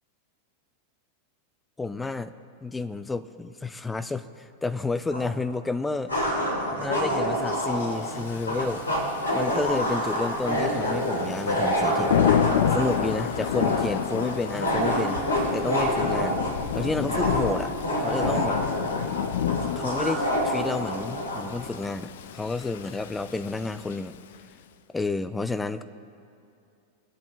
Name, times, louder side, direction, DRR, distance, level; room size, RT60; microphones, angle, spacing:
voice 1, 1.8-2.3 2.6-4.3 4.6-6.1 6.8-8.9 9.3-12.1 12.7-15.2 15.5-16.4 16.7-17.7 18.0-18.6 19.8-24.1 24.9-25.8, left 3 dB, 10° left, 12 dB, 0.5 m, -30 dB
sound 1, 5.1-5.2 6.1-21.5, equal, 75° left, 3.6 m, -27 dB
Thunder / Rain, 7.8-24.4, left 10 dB, 55° left, 0.4 m, -31 dB
23.5 x 8.4 x 3.2 m, 2.5 s
figure-of-eight pair, 90°, 0 cm